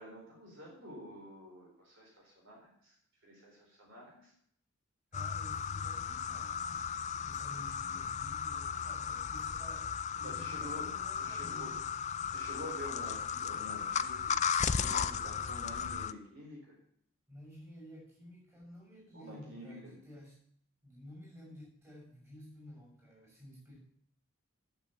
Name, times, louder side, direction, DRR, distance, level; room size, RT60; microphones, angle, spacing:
voice 1, 0.0-2.9 3.2-4.3 10.1-11.8 12.3-16.8 19.1-20.0, equal, 60° right, -3 dB, 4.5 m, -49 dB
sound 1, 5.1-16.1, left 7 dB, 30° left, 0.4 m, -35 dB
voice 2, 5.1-6.9 7.2-11.8 17.3-20.4 20.8-23.8, equal, 15° right, -3 dB, 6.0 m, -52 dB
9.2 x 7.3 x 8.6 m, 0.66 s
head